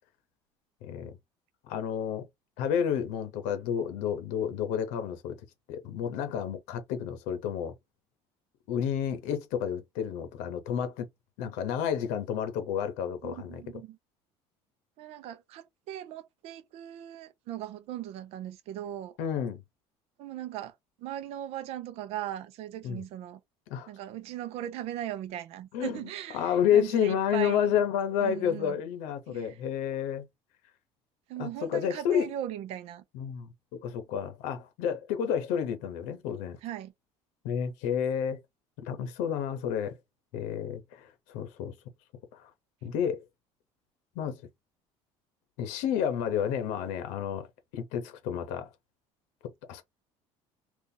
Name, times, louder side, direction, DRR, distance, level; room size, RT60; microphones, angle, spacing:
voice 1, 0.8-1.2 1.6-2.3 2.6-5.4 5.7-7.7 8.7-11.1 11.4-13.6 19.2-19.6 22.8-23.0 23.7-23.9 25.7-26.0 26.3-30.3 31.4-32.3 33.1-36.6 37.4-38.4 38.8-40.0 40.3-41.7 42.3-42.5 42.8-43.2 44.2-44.4 45.6-47.5 47.7-48.7 49.4-49.8, left 8 dB, 90° left, 0.8 m, -30 dB
voice 2, 13.2-14.0 15.0-19.2 20.2-23.4 23.9-27.8 28.2-28.8 29.3-29.6 31.3-33.0 36.6-36.9, right 12 dB, 55° right, 0.6 m, -39 dB
2.7 x 2.4 x 3.8 m
cardioid pair, 165°, 12 cm